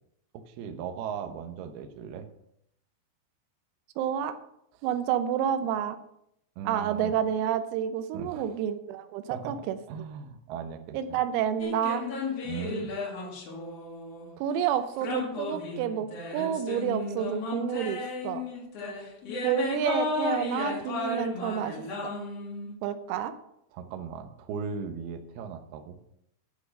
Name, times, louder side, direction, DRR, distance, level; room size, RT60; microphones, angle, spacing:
voice 1, 0.3-2.3 6.6-7.1 8.1-8.5 9.3-11.2 12.4-12.9 23.7-26.0, right 7 dB, 75° right, 6 dB, 2.4 m, -38 dB
voice 2, 4.0-4.4 4.8-6.0 6.7-9.8 10.9-12.0 14.4-18.4 19.4-21.8 22.0-22.1 22.8-23.3, right 9 dB, 90° right, 10 dB, 3.6 m, -29 dB
sound 1, 11.6-14.3 15.0-22.7, left 3 dB, 80° left, 1.4 m, -34 dB
13.5 x 6.0 x 6.5 m, 0.76 s
omnidirectional pair, 6.0 m